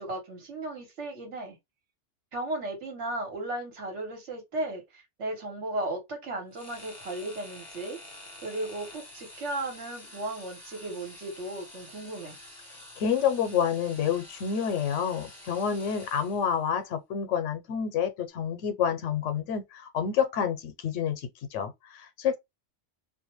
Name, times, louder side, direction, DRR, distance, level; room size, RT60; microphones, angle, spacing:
voice 1, 0.0-1.6 2.3-8.0 8.4-12.4, right 2 dB, 75° right, 1.3 m, -35 dB
sound 1, 6.5-16.6, left 1 dB, 20° left, 1.1 m, -48 dB
voice 2, 13.0-22.4, left 7 dB, 85° left, 1.0 m, -28 dB
2.5 x 2.2 x 2.9 m
omnidirectional pair, 1.2 m